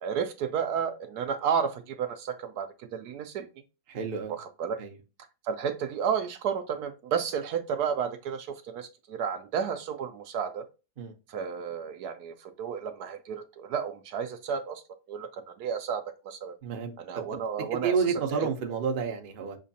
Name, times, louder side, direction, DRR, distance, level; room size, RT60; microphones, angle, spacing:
voice 1, 0.0-3.5 4.6-4.8 5.4-10.7 11.3-14.8 15.1-16.5 17.0-17.9 18.3-18.5, right 7 dB, 70° right, 1.1 m, -32 dB
voice 2, 3.9-4.4 4.8-5.0 11.0-11.1 16.6-17.2 17.7-19.6, right 5 dB, 45° right, 0.7 m, -30 dB
6.3 x 3.0 x 2.7 m
omnidirectional pair, 1.8 m